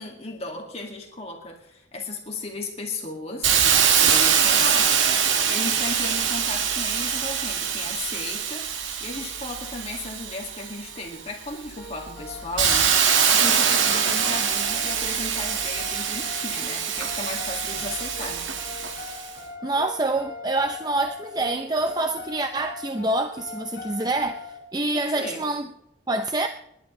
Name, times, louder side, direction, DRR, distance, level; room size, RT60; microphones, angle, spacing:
voice 1, 0.0-4.9 5.5-18.5 25.2-25.4, left 2 dB, 30° left, 2.0 m, -35 dB
Hiss, 3.4-11.0 11.5-19.3, right 7 dB, 85° right, 1.7 m, -23 dB
sound 1, 11.8-24.6, left 3 dB, 50° left, 3.8 m, -40 dB
voice 2, 19.6-25.7 26.1-26.5, right 2 dB, 20° right, 0.5 m, -26 dB
27.0 x 11.5 x 3.2 m
head